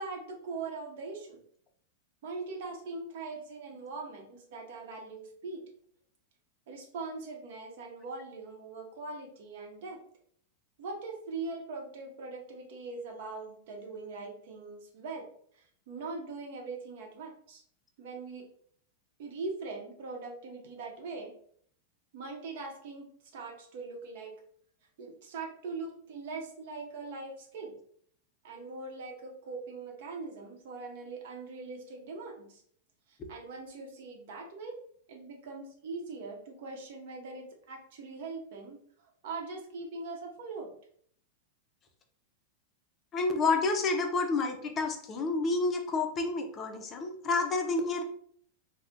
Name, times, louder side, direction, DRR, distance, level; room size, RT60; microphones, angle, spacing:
voice 1, 0.0-1.4 2.2-5.6 6.7-10.0 10.8-15.2 15.5-17.6 18.0-18.5 19.2-21.3 22.1-24.3 25.0-27.8 28.4-32.6 33.1-34.8 35.1-40.7, right 3 dB, 65° right, 2 dB, 0.7 m, -41 dB
voice 2, 43.1-48.0, left 3 dB, 30° left, 4 dB, 0.5 m, -29 dB
2.5 x 2.0 x 3.5 m, 0.62 s
hypercardioid pair, 120°, 0 cm